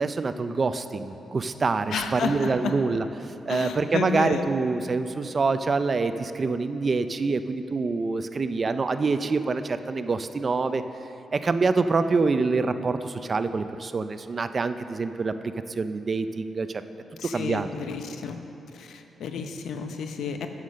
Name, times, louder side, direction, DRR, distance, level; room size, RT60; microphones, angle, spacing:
voice 1, 0.0-3.1 3.5-10.8 11.3-16.8 17.2-17.7, right 4 dB, 35° right, 11 dB, 0.4 m, -26 dB
voice 2, 1.9-2.7 3.5-4.5 17.2-18.4 18.7-20.5, left 6 dB, 85° left, 6 dB, 0.7 m, -31 dB
9.4 x 6.6 x 6.3 m, 2.9 s
cardioid pair, 115°, 0 cm